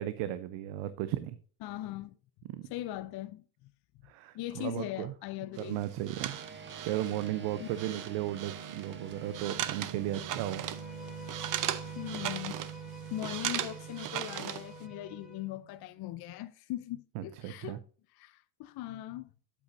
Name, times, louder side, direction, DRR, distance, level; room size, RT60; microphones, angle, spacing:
voice 1, 0.0-1.4 2.5-2.7 4.0-5.1 5.6-6.4 6.8-10.6 17.1-17.8, right 13 dB, 70° right, 0.7 m, -35 dB
voice 2, 1.6-2.1 2.7-3.4 4.3-5.8 7.6-7.7 11.9-12.6 13.1-17.8 18.1-19.3, left 14 dB, 50° left, 0.6 m, -40 dB
sound 1, 5.6-14.8, right 11 dB, 40° right, 0.7 m, -38 dB
sound 2, 6.2-15.9, right 7 dB, 20° right, 1.3 m, -46 dB
Bowed string instrument, 10.5-15.5, left 4 dB, ahead, 2.4 m, -51 dB
8.6 x 8.2 x 2.6 m
supercardioid pair, 105°, 49 cm